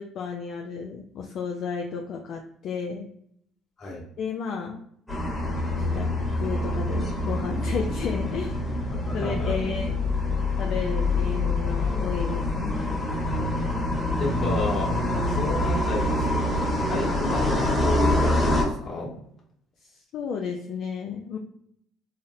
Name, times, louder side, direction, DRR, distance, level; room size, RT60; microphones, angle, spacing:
voice 1, 0.0-3.1 4.2-4.8 5.8-6.1 6.4-8.6 9.1-9.9 10.6-13.0 19.8-21.4, left 6 dB, 60° left, 1 dB, 0.4 m, -33 dB
sound 1, 5.1-18.6, left 1 dB, 15° left, 1.2 m, -25 dB
voice 2, 8.9-9.5 14.2-14.9 15.3-19.1, left 2 dB, 40° left, -4 dB, 1.5 m, -31 dB
3.9 x 2.0 x 2.6 m, 0.70 s
supercardioid pair, 70°, 0 cm